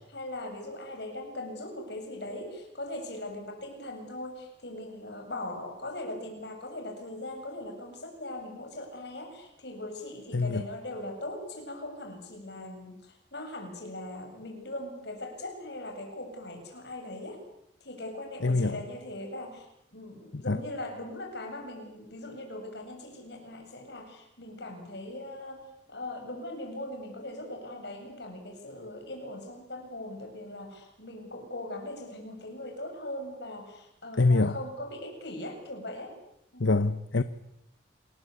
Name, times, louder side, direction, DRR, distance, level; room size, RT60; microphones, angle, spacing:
voice 1, 0.0-17.4 17.8-36.1 36.5-36.7, left 1 dB, 60° left, 7.5 m, -40 dB
voice 2, 10.3-10.7 18.4-18.8 20.3-20.6 34.1-34.6 36.6-37.2, left 3 dB, 80° left, 1.0 m, -25 dB
27.5 x 20.5 x 8.5 m
head